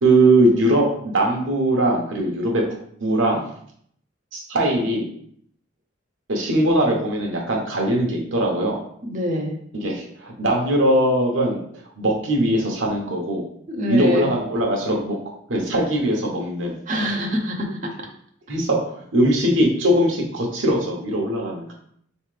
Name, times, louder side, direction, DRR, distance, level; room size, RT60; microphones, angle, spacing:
voice 1, 0.0-2.6 3.0-3.5 4.3-5.1 6.3-8.8 9.7-11.6 12.0-13.5 13.8-15.2 15.5-16.8 18.5-21.7, right 1 dB, 75° right, 0 dB, 1.0 m, -20 dB
voice 2, 9.0-9.6 13.7-14.3 16.9-18.1, equal, 40° right, 1 dB, 0.6 m, -25 dB
3.7 x 3.2 x 3.2 m, 0.65 s
head